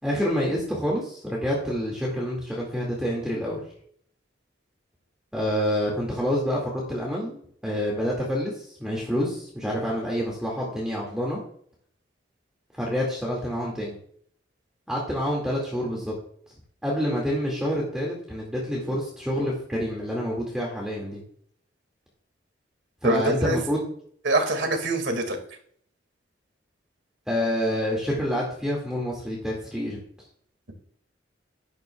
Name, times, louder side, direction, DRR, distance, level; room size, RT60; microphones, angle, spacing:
voice 1, 0.0-3.6 5.3-11.4 12.7-14.0 14.9-16.1 16.8-21.2 23.0-23.9 27.3-30.0, equal, 5° right, -4 dB, 2.1 m, -27 dB
voice 2, 23.0-23.6 24.2-25.4, right 2 dB, 70° right, 5 dB, 2.1 m, -24 dB
12.0 x 11.0 x 2.3 m, 0.63 s
head